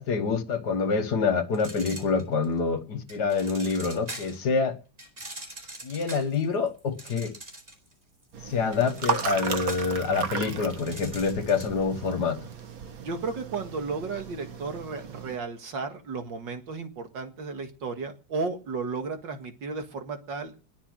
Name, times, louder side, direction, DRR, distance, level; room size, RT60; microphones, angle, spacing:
voice 1, 0.0-4.8 5.8-7.3 8.4-12.4, left 4 dB, 60° left, 1.8 m, -26 dB
sound 1, 1.5-2.6 3.1-4.5 5.0-7.9 8.2-11.8, right 1 dB, 30° right, 4.7 m, -43 dB
sound 2, 8.3-15.4, right 6 dB, 50° right, 1.6 m, -35 dB
voice 2, 13.0-20.5, right 4 dB, 70° right, 2.5 m, -34 dB
20.5 x 7.2 x 6.2 m
omnidirectional pair, 2.1 m